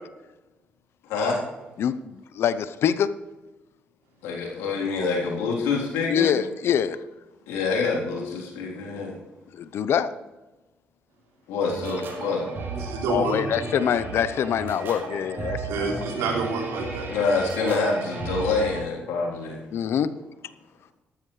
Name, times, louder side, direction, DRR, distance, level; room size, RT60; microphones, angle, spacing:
voice 1, 1.0-1.4 4.2-6.4 7.5-9.2 11.5-12.5 17.1-19.6, left 4 dB, 85° left, -3 dB, 3.5 m, -26 dB
voice 2, 1.8-3.1 6.1-7.0 9.6-10.1 13.1-16.1 19.7-20.1, left 8 dB, 65° left, 14 dB, 0.7 m, -25 dB
sound 1, 11.6-18.8, right 3 dB, 60° right, 4.8 m, -34 dB
voice 3, 12.8-13.4 15.7-17.1, right 4 dB, 85° right, 0 dB, 3.2 m, -28 dB
13.0 x 13.0 x 3.2 m, 1.1 s
supercardioid pair, 60°, 4 cm